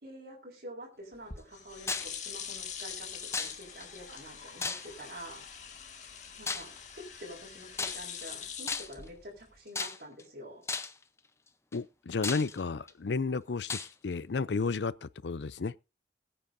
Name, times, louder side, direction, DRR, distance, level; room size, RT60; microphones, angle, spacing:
voice 1, 0.0-5.5 6.4-10.6, equal, 60° right, 4.7 m, -47 dB
sound 1, 1.1-9.6, left 7 dB, 45° left, 2.0 m, -44 dB
sound 2, 1.9-2.2 3.3-3.9 4.6-5.1 6.5-6.8 7.7-8.3 8.7-9.1 9.8-10.2 10.7-11.0 11.7-11.8 12.2-12.9 13.7-13.9, left 4 dB, 15° left, 0.7 m, -35 dB
voice 2, 11.7-15.7, left 4 dB, 85° left, 0.5 m, -32 dB
21.5 x 8.9 x 2.7 m
head